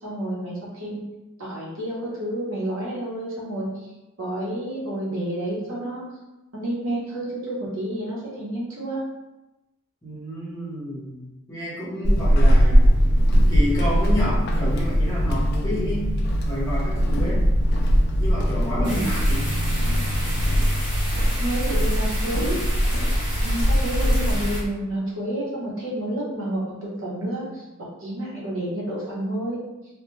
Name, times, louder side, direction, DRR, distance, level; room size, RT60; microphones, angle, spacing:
voice 1, 0.0-1.0 1.4-3.7 4.2-6.0 6.5-9.0 18.8-19.1 21.4-22.6 23.4-29.6, right 1 dB, 70° right, -6 dB, 0.9 m, -30 dB
voice 2, 10.0-12.9 13.3-16.1 16.4-17.4 18.2-19.5, equal, 15° left, -9 dB, 0.9 m, -30 dB
Walk footsteps / Squeak, 12.0-24.7, equal, 50° left, 0.3 m, -20 dB
sound 1, 18.8-24.6, equal, 25° right, 1.0 m, -33 dB
2.2 x 2.2 x 3.1 m, 1.0 s
head